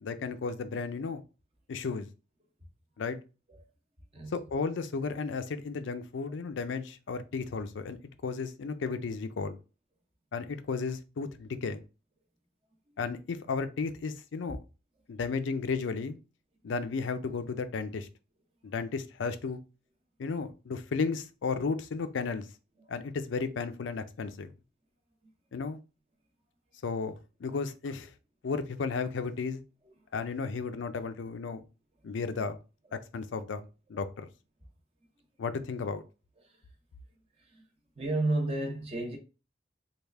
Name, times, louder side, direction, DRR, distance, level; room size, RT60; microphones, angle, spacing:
voice 1, 0.0-1.2 1.7-2.1 3.0-3.2 4.3-8.0 8.2-9.6 10.3-11.8 13.0-14.6 15.1-16.2 16.6-18.1 18.6-19.6 20.2-22.5 22.9-24.5 25.5-25.8 26.8-28.1 28.4-29.6 30.1-31.6 32.0-32.6 32.9-34.3 35.4-36.0, left 4 dB, 90° left, 0.4 m, -34 dB
voice 2, 4.1-4.5 6.3-6.4 11.2-11.3 22.8-22.9 27.5-27.6 30.0-30.1 32.8-33.0 36.4-36.7 37.4-37.6 38.0-39.2, right 2 dB, 30° right, 0.7 m, -33 dB
3.3 x 2.4 x 3.4 m
head